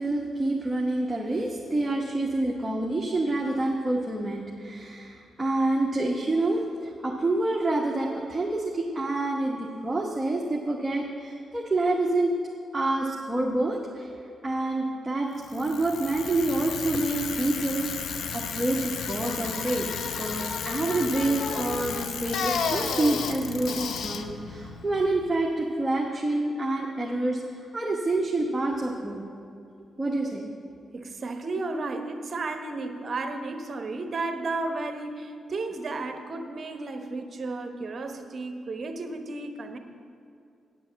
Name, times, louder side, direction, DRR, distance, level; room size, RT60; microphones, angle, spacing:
voice 1, 0.0-12.3 12.7-14.1 14.4-29.2 30.0-30.4, right 2 dB, 15° right, -2 dB, 1.1 m, -27 dB
Bicycle, 15.4-25.5, left 6 dB, 80° left, 0.6 m, -33 dB
voice 2, 30.9-39.8, right 3 dB, 45° right, 6 dB, 1.0 m, -33 dB
9.1 x 7.4 x 7.3 m, 2.4 s
cardioid pair, 100°, 0 cm